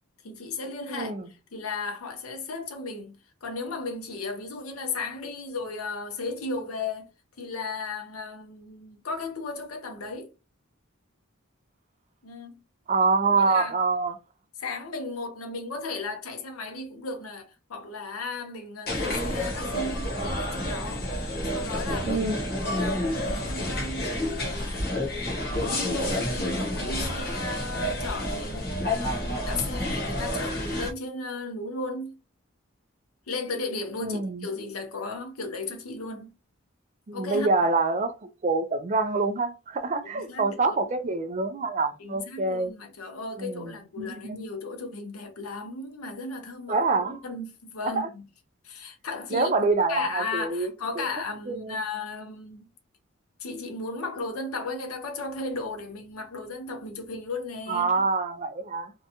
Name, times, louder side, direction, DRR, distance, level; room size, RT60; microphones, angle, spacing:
voice 1, 0.2-1.1 1.5-7.1 7.4-10.3 12.2-12.6 13.4-13.7 14.6-21.1 21.4-22.2 22.6-24.8 25.5-32.2 33.3-36.3 37.1-37.5 40.1-40.8 42.0-46.8 47.1-48.2 48.6-49.5 49.9-52.6 53.4-57.9, left 3 dB, 90° left, 0.6 m, -35 dB
voice 2, 0.9-1.3 12.9-14.2 22.0-22.5 34.0-34.5 37.1-38.2 38.4-42.7 43.4-44.4 46.7-47.2 47.8-48.1 49.3-50.7 51.0-51.1 51.5-51.8 57.7-58.9, right 3 dB, 35° right, 0.3 m, -26 dB
sound 1, 18.9-30.9, left 1 dB, 45° left, 0.9 m, -29 dB
2.6 x 2.2 x 2.7 m
head